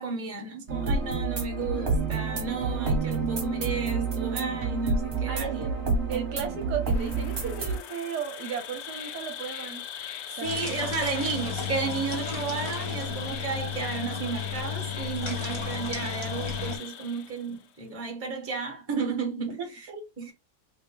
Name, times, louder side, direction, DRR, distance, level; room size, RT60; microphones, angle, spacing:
voice 1, 0.0-5.7 10.3-19.9 20.2-20.3, right 5 dB, 10° right, 0.8 m, -33 dB
sound 1, 0.7-7.8, right 4 dB, 40° right, 1.2 m, -28 dB
voice 2, 5.3-5.8 6.1-9.8 10.4-10.7 19.6-20.0, right 7 dB, 70° right, 1.2 m, -35 dB
Insect, 6.8-17.6, left 9 dB, 75° left, 1.1 m, -39 dB
sound 2, 10.4-16.8, left 5 dB, 35° left, 0.4 m, -34 dB
3.8 x 2.1 x 3.7 m
omnidirectional pair, 1.9 m